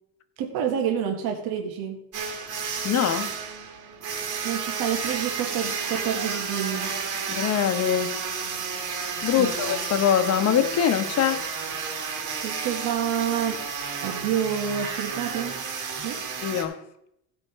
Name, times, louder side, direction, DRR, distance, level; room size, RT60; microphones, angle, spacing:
voice 1, 0.4-2.0 4.4-6.9 9.4-9.5 12.4-13.6 14.0-15.6 16.0-16.2, right 9 dB, 80° right, 1.6 m, -28 dB
sound 1, 2.1-16.6, right 6 dB, 55° right, 2.1 m, -31 dB
voice 2, 2.8-3.3 7.3-8.2 9.2-11.4 16.4-16.8, left 9 dB, 45° left, 0.9 m, -23 dB
15.5 x 5.2 x 4.9 m
cardioid pair, 135°, 37 cm